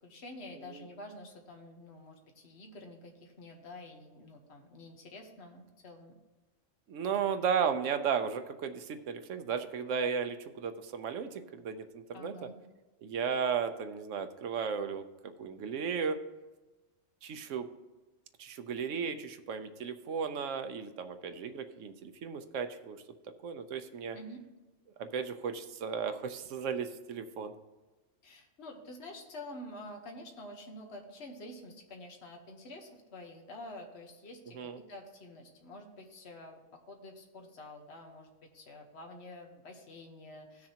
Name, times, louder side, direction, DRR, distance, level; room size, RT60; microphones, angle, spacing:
voice 1, 0.0-6.1 7.0-7.2 12.1-12.6 24.1-24.4 28.2-38.3 38.5-40.7, left 1 dB, 60° left, 2 dB, 1.4 m, -48 dB
voice 2, 0.6-0.9 6.9-12.3 13.0-16.2 17.2-17.7 18.4-23.0 23.4-24.2 25.0-27.5 34.5-34.8, right 6 dB, 85° right, 8 dB, 1.1 m, -35 dB
16.5 x 6.4 x 2.9 m, 1.2 s
omnidirectional pair, 1.2 m